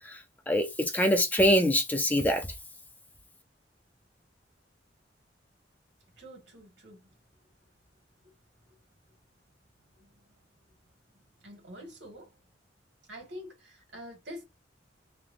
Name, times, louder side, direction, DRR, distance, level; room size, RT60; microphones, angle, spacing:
voice 1, 0.0-2.5, equal, 10° left, 0.4 m, -25 dB
voice 2, 6.2-7.1 11.4-12.3 13.1-14.4, equal, 85° right, 1.5 m, -46 dB
3.2 x 2.2 x 2.4 m
head